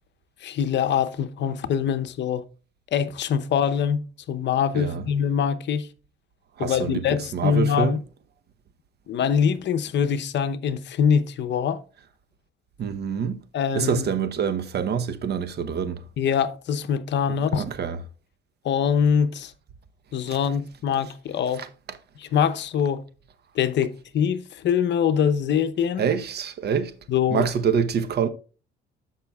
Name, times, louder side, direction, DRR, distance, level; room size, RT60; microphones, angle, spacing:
voice 1, 0.4-2.4 2.9-5.9 6.6-8.0 9.1-11.8 13.5-14.1 16.2-17.7 18.6-19.5 20.1-21.6 22.2-23.0 23.5-26.0 27.1-27.5, left 8 dB, 60° left, 0.8 m, -24 dB
voice 2, 4.7-5.1 6.6-8.0 12.8-13.4 13.7-16.0 17.5-18.0 20.3-20.4 21.6-21.7 26.0-26.9 27.3-28.3, right 7 dB, 50° right, 0.8 m, -26 dB
13.5 x 5.7 x 2.3 m
cardioid pair, 90°, 21 cm